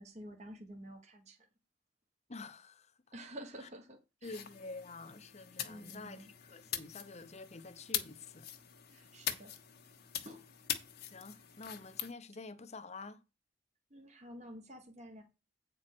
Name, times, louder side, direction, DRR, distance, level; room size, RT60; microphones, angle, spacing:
voice 1, 0.0-1.4 3.1-4.4 5.7-6.3 8.9-9.5 10.1-10.5 13.9-15.2, equal, 40° right, 1.4 m, -50 dB
voice 2, 2.3-2.9 4.2-8.5 11.1-13.2, left 3 dB, 40° left, 0.9 m, -48 dB
sound 1, 4.2-12.1, left 10 dB, 60° left, 1.2 m, -43 dB
8.8 x 4.6 x 6.0 m
head